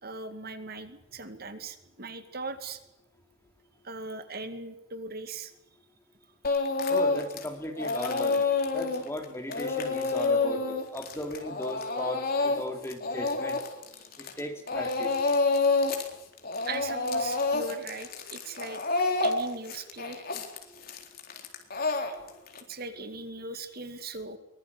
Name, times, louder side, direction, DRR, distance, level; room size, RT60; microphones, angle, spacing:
voice 1, 0.0-2.8 3.8-5.5 16.7-18.8 19.2-20.3 22.0-22.2 22.7-24.4, right 3 dB, 50° right, 9 dB, 2.2 m, -39 dB
Speech / Crying sobbing, 6.4-7.5 7.8-14.4 14.7-16.1 16.4-22.6, left 3 dB, 50° left, 4.0 m, -28 dB
voice 2, 6.9-8.5 8.7-13.6 14.2-15.3 20.7-20.8, left 1 dB, 15° left, 4 dB, 3.3 m, -37 dB
23.5 x 20.5 x 8.5 m, 0.87 s
head